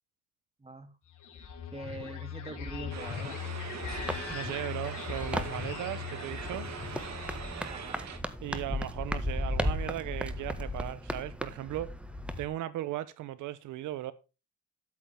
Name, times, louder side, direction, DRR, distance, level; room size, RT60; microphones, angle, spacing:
voice 1, 0.6-0.9 1.7-3.4 7.6-8.1, right 3 dB, 20° right, 2.8 m, -43 dB
sound 1, 1.1-7.7, left 7 dB, 80° left, 4.3 m, -40 dB
sound 2, 2.9-8.2, right 6 dB, 60° right, 2.3 m, -42 dB
sound 3, 3.6-12.5, left 1 dB, 5° right, 1.6 m, -36 dB
voice 2, 4.3-6.7 8.4-11.9 12.4-14.1, right 14 dB, 85° right, 0.9 m, -37 dB
13.5 x 7.4 x 3.5 m
cardioid pair, 90°, 30 cm